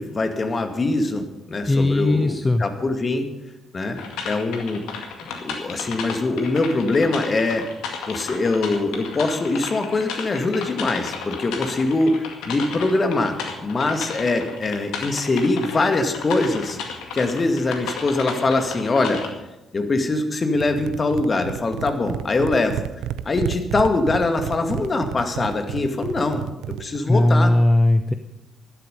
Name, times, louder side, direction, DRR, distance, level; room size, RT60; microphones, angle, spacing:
voice 1, 0.0-3.3 3.7-4.0 4.2-4.8 5.4-7.7 8.1-16.8 17.1-19.2 19.7-22.9 23.2-27.5, left 2 dB, 35° left, 6 dB, 2.2 m, -23 dB
voice 2, 1.7-2.6 27.1-28.1, left 1 dB, 20° left, 10 dB, 0.9 m, -18 dB
sound 1, 4.0-19.3, left 5 dB, 70° left, 2.0 m, -33 dB
sound 2, 20.5-27.0, right 12 dB, 65° right, 0.5 m, -32 dB
16.0 x 12.0 x 5.5 m, 0.96 s
figure-of-eight pair, 40°, 0 cm